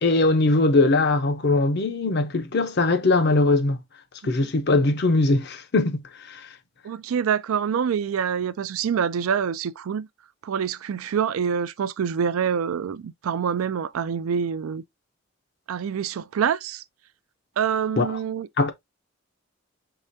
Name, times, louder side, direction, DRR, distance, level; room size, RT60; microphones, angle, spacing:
voice 1, 0.0-3.8 4.2-6.5 18.0-18.2 18.6-18.7, left 2 dB, 50° left, 0.6 m, -21 dB
voice 2, 6.8-10.1 10.4-14.8 15.7-16.8 17.6-18.5, right 7 dB, 90° right, 0.4 m, -26 dB
4.8 x 3.3 x 2.6 m
head